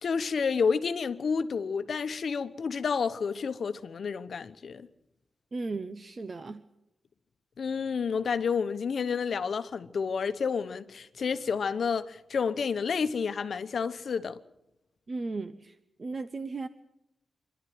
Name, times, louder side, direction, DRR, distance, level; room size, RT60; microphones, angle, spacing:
voice 1, 0.0-4.9 7.6-14.4, left 5 dB, 55° left, 1.0 m, -30 dB
voice 2, 5.5-6.6 15.1-16.7, right 3 dB, 30° right, 0.7 m, -36 dB
26.0 x 12.5 x 9.5 m
wide cardioid pair, 160°, 0 cm